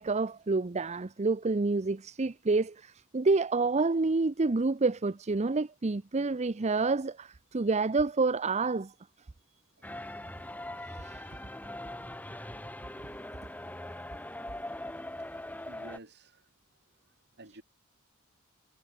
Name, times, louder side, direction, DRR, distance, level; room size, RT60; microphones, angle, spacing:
voice 1, 0.0-8.9 10.9-11.3, right 3 dB, 30° right, 0.6 m, -28 dB
sound 1, 9.8-16.0, left 1 dB, 10° left, 2.8 m, -41 dB
voice 2, 15.2-16.5 17.4-17.6, right 2 dB, 50° right, 4.5 m, -52 dB
head